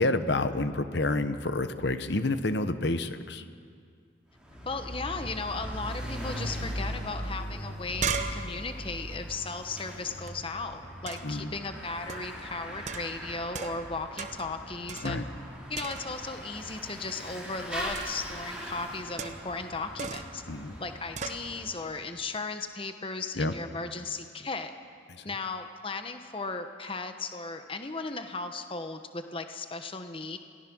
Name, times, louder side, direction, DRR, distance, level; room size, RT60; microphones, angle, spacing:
voice 1, 0.0-3.4 11.2-11.5 15.0-15.2 20.5-20.8 23.4-23.5, left 2 dB, 60° left, 10 dB, 1.1 m, -28 dB
Bicycle / Mechanisms, 4.3-21.9, equal, 5° right, 3.9 m, -40 dB
voice 2, 4.6-15.2 15.7-20.4 20.8-24.7 25.2-30.4, left 3 dB, 30° left, 7 dB, 1.0 m, -36 dB
sound 1, 7.2-7.3 7.6-10.3 11.1-11.4 12.1-12.4 12.9-13.9 14.2-14.5 14.9-15.5 15.7-16.3 17.9-18.3 19.2-19.6 20.0-20.4 21.2-21.5, right 5 dB, 40° right, 1.0 m, -37 dB
27.5 x 18.0 x 6.2 m, 2.2 s
head